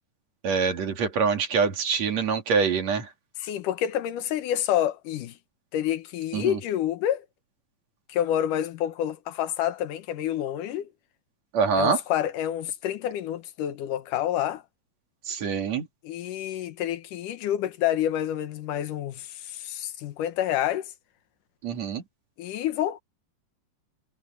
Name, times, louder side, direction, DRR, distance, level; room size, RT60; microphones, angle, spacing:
voice 1, 0.4-3.1 6.3-6.6 11.5-12.0 15.3-15.9 21.6-22.0, right 5 dB, 60° right, 3.5 m, -25 dB
voice 2, 3.4-5.4 5.7-7.3 8.1-10.9 11.8-14.6 16.0-20.9 22.4-23.0, left 11 dB, 80° left, 2.7 m, -28 dB
omnidirectional pair, 3.6 m